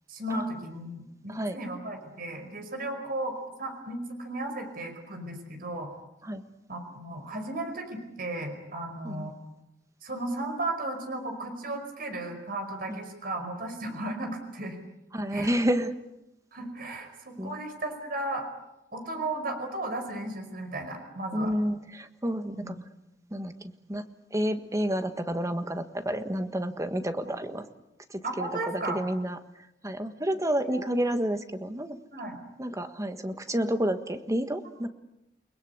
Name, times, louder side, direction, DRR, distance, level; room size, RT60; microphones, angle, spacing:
voice 1, 0.1-5.9 6.7-9.4 10.0-14.8 15.3-15.5 16.5-18.5 18.9-21.5 22.5-22.8 27.2-27.3 28.2-29.0 30.6-30.8 32.1-32.4, right 2 dB, 55° right, 5 dB, 5.2 m, -35 dB
voice 2, 15.1-15.9 17.4-17.6 21.3-22.8 23.3-24.0 24.3-27.7 28.1-29.4 29.8-32.0 32.6-34.9, equal, 15° right, 8 dB, 1.6 m, -30 dB
29.5 x 20.5 x 8.1 m, 0.89 s
head